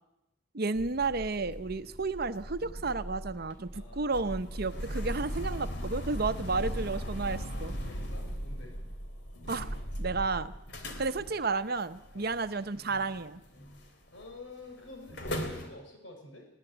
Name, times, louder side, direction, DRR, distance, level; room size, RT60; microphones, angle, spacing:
voice 1, 0.5-7.8 9.5-9.7 10.0-10.5 11.0-13.4, right 3 dB, 50° right, 12 dB, 0.8 m, -32 dB
sound 1, 0.8-13.9 14.2-14.5 14.9-15.7, equal, 60° left, 3.2 m, -39 dB
voice 2, 3.7-4.2 6.4-6.7 7.9-8.8 12.1-12.3 14.1-16.5, left 2 dB, 80° left, 3 dB, 5.5 m, -49 dB
21.0 x 16.5 x 8.0 m, 0.89 s
head